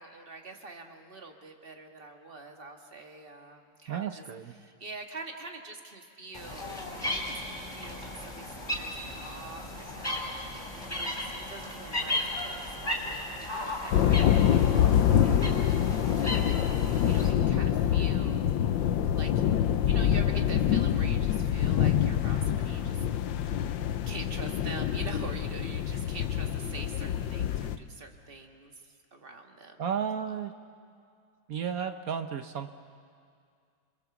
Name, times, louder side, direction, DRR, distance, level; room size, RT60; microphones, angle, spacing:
voice 1, 0.0-4.2 4.6-9.6 9.9-14.9 15.2-18.5 19.1-19.4 19.9-23.0 23.5-29.8, right 3 dB, 30° right, 4 dB, 1.7 m, -45 dB
voice 2, 3.9-4.5 29.8-30.5 31.5-32.7, right 7 dB, 65° right, 8 dB, 0.9 m, -33 dB
sound 1, 6.3-17.3, left 1 dB, 10° left, 3.7 m, -36 dB
sound 2, 13.9-27.8, left 10 dB, 65° left, 1.4 m, -26 dB
27.5 x 22.5 x 7.1 m, 2.3 s
omnidirectional pair, 2.4 m